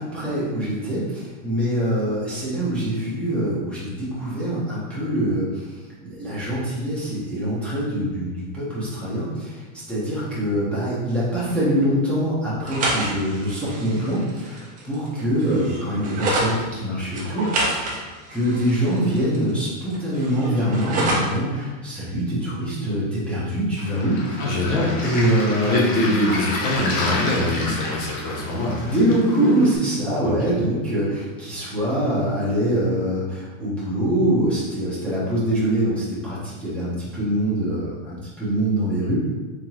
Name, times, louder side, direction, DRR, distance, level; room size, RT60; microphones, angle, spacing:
voice 1, 0.0-5.8 6.0-9.6 9.9-17.9 18.3-24.4 25.0-25.8 27.6-27.7 28.8-39.1, right 1 dB, 5° left, -9 dB, 0.9 m, -24 dB
sound 1, 12.6-16.5 17.1-19.5 19.8-21.4, right 2 dB, 20° right, 0.6 m, -28 dB
Waves surf, 23.8-29.8, left 2 dB, 20° left, 0.3 m, -30 dB
voice 2, 24.4-25.0 25.7-28.8 30.2-30.5, left 1 dB, 40° left, -2 dB, 0.8 m, -23 dB
3.7 x 3.5 x 3.0 m, 1.3 s
supercardioid pair, 155°, 38 cm